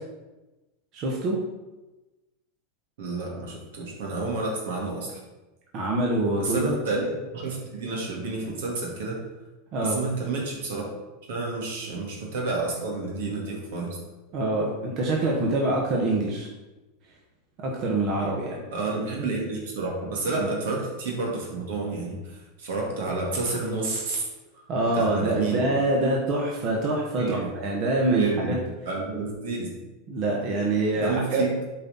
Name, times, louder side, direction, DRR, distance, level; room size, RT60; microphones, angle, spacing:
voice 1, 0.9-1.4 5.7-6.7 9.7-10.0 14.3-16.5 17.6-18.6 20.4-20.5 24.7-28.6 30.1-31.5, right 2 dB, 45° right, -2 dB, 1.3 m, -25 dB
voice 2, 3.0-5.2 6.4-9.2 9.8-10.9 11.3-14.0 18.7-24.3 24.5-24.6 24.9-25.6 27.2-27.5 28.0-28.6 28.9-29.8 31.0-31.7, right 3 dB, 75° right, -1 dB, 2.1 m, -30 dB
7.7 x 4.4 x 4.1 m, 1.1 s
hypercardioid pair, 110°, 0 cm